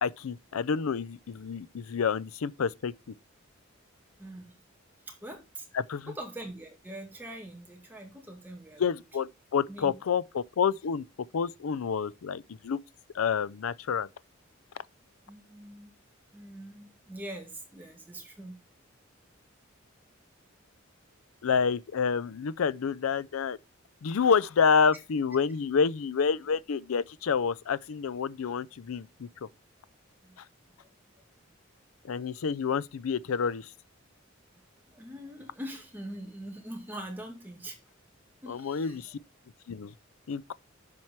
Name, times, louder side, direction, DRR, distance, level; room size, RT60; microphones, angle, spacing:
voice 1, 0.0-2.9 5.7-6.1 8.8-11.0 11.3-12.8 13.1-14.1 21.4-23.6 24.0-29.5 30.4-30.5 32.0-33.7 38.5-39.2 39.7-39.9 40.3-40.5, left 6 dB, 85° left, 0.5 m, -28 dB
voice 2, 4.2-4.5 5.1-5.6 6.1-8.8 9.7-9.9 15.3-15.9 16.3-18.6 30.2-30.4 30.8-30.9 34.9-37.8 38.4-39.0, right 1 dB, 10° right, 2.1 m, -43 dB
7.5 x 4.7 x 5.8 m
head